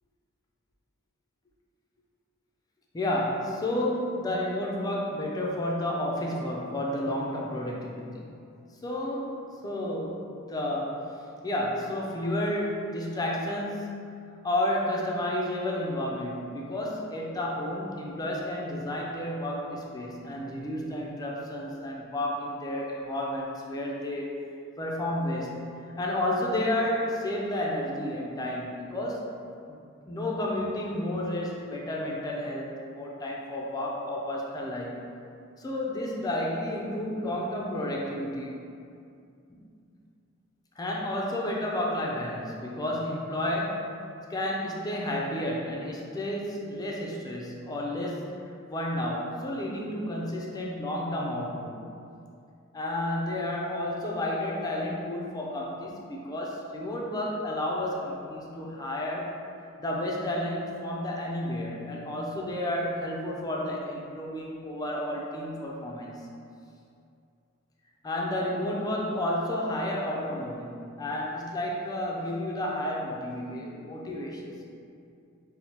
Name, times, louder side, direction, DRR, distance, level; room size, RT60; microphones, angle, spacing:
voice 1, 2.9-8.2 8.8-11.1 11.4-14.0 14.4-24.4 24.8-25.7 26.0-29.3 30.0-35.0 35.6-38.6 39.5-39.6 40.8-43.9 44.3-48.3 48.7-51.8 52.7-59.3 59.8-66.1 68.0-74.7, left 1 dB, 20° left, -2 dB, 0.4 m, -31 dB
4.3 x 2.0 x 2.8 m, 2.5 s
head